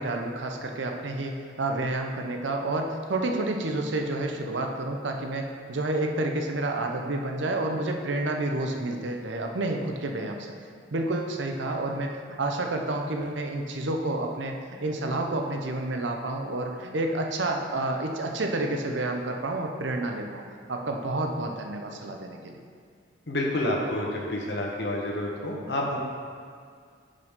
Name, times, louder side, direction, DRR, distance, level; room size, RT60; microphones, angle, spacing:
voice 1, 0.0-10.5 10.9-20.4 20.7-22.5, right 2 dB, 80° right, 3 dB, 0.8 m, -29 dB
voice 2, 23.3-26.0, left 1 dB, 65° left, -1 dB, 1.2 m, -29 dB
9.6 x 5.2 x 3.7 m, 2.1 s
head